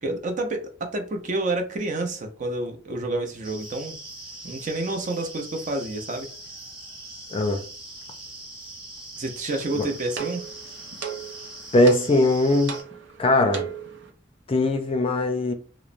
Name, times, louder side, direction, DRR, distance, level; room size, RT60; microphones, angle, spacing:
voice 1, 0.0-4.0 4.4-6.3 9.2-10.5, right 2 dB, 45° right, 0.5 m, -29 dB
sound 1, 3.4-12.8, right 1 dB, 30° right, 0.9 m, -41 dB
voice 2, 7.3-7.6 9.8-9.9 11.7-12.8 13.2-13.7 14.5-15.5, left 2 dB, 30° left, 0.4 m, -20 dB
sound 2, 9.5-14.1, right 7 dB, 90° right, 0.6 m, -38 dB
3.0 x 2.0 x 2.4 m
head